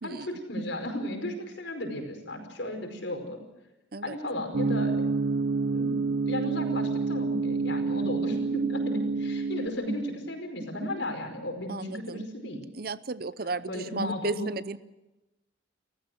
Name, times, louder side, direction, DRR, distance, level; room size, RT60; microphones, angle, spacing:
voice 1, 0.0-3.4 4.0-4.9 5.7-6.0 6.3-12.6 13.7-14.5, left 1 dB, 65° left, 5 dB, 5.2 m, -34 dB
sound 1, 4.5-9.7, right 4 dB, 75° right, 1.1 m, -28 dB
voice 2, 11.7-12.2 12.7-14.8, right 3 dB, 50° right, 16 dB, 0.7 m, -34 dB
30.0 x 14.5 x 7.8 m, 1.0 s
head